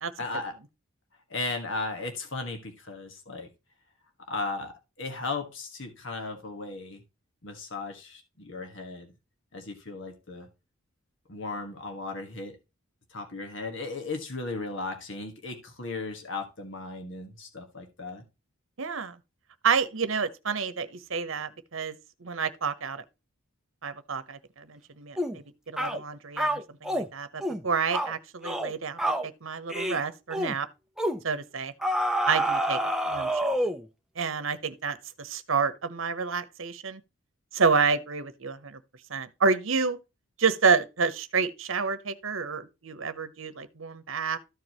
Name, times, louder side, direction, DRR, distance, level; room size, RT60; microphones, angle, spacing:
voice 1, 0.2-0.5 1.3-3.5 4.3-7.0 7.4-9.1 9.5-10.5 11.3-12.6 13.1-18.2, left 3 dB, 60° left, 1.6 m, -36 dB
voice 2, 18.8-19.2 19.6-21.9 22.2-23.0 23.8-30.7 31.2-31.7 32.3-32.8 33.1-33.4 34.2-37.0 37.5-38.8 39.1-40.0 40.4-44.4, right 5 dB, 70° right, 1.0 m, -29 dB
sound 1, 25.2-25.4 25.8-26.0 26.4-27.1 27.4-27.6 27.9-28.1 28.4-28.7 29.0-29.3 29.7-30.0 30.3-30.5 31.0-31.2 31.8-33.9, right 1 dB, ahead, 0.6 m, -28 dB
13.5 x 4.6 x 3.0 m
head